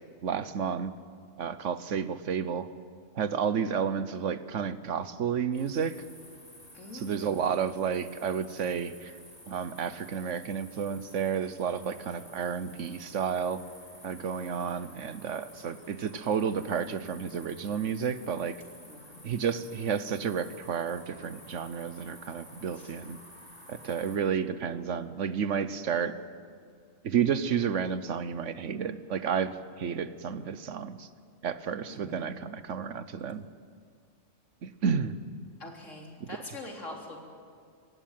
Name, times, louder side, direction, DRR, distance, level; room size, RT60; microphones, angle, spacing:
voice 1, 0.2-0.9 1.4-2.7 3.1-6.0 6.9-9.2 9.5-13.6 14.0-18.6 19.2-23.2 23.7-26.2 27.0-31.1 31.4-33.4 34.6-35.2 36.2-36.3, right 7 dB, 75° right, 13 dB, 1.3 m, -31 dB
sound 1, 5.5-24.2, left 1 dB, 10° left, 7.7 m, -52 dB
voice 2, 6.7-7.4 18.8-19.3 22.8-22.9 31.9-32.3 35.6-37.2, left 2 dB, 85° left, 0 dB, 4.0 m, -44 dB
25.0 x 16.0 x 9.2 m, 2.2 s
omnidirectional pair, 1.3 m